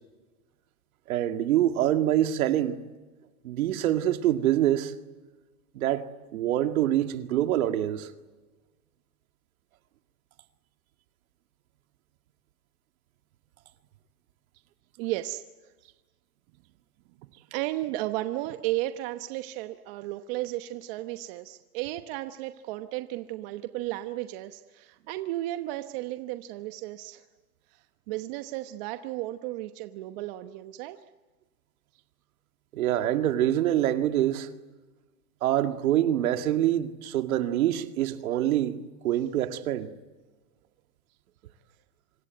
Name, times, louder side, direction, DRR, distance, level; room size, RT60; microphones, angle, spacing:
voice 1, 1.1-2.8 3.4-4.9 5.8-6.1 6.3-8.1 32.7-34.5 35.4-39.9, right 12 dB, 65° right, 2.1 m, -25 dB
voice 2, 15.0-15.4 15.8-15.9 17.2-27.2 28.1-31.0, right 16 dB, 40° right, 1.0 m, -34 dB
26.5 x 22.0 x 9.4 m
hypercardioid pair, 140°, 45 cm